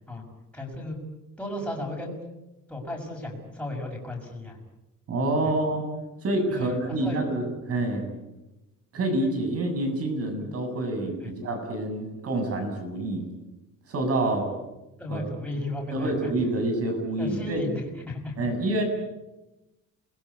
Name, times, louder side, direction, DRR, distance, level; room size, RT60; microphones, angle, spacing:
voice 1, 0.5-1.0 1.4-2.1 2.7-4.6 5.4-5.5 6.5-7.2 11.2-11.3 14.2-14.3 15.0-16.3 17.2-18.4, left 1 dB, 5° left, -1 dB, 6.3 m, -34 dB
voice 2, 5.1-5.9 6.2-8.1 8.9-13.2 13.9-14.5 15.1-15.2 15.9-17.6 18.4-18.8, right 2 dB, 45° right, 6 dB, 7.5 m, -27 dB
28.0 x 21.5 x 8.5 m, 0.99 s
cardioid pair, 165°, 33 cm